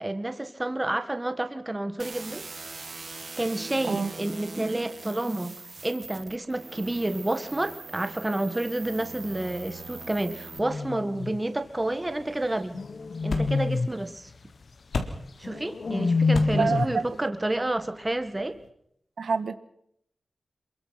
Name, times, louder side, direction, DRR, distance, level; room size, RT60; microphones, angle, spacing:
voice 1, 0.0-2.4 3.4-5.5 5.8-12.8 13.2-14.3 15.4-18.6, right 1 dB, 15° right, 8 dB, 1.8 m, -29 dB
sound 1, 2.0-10.6, right 3 dB, 40° right, 1.9 m, -42 dB
sound 2, 10.5-11.4 12.7-14.0 15.4-17.1, left 3 dB, 45° left, 0.9 m, -27 dB
sound 3, 11.6-18.7, left 4 dB, 75° left, 3.7 m, -39 dB
voice 2, 16.5-17.0 19.2-19.6, right 5 dB, 65° right, 10 dB, 1.7 m, -26 dB
28.5 x 23.0 x 6.0 m, 0.72 s
wide cardioid pair, 170°, 0 cm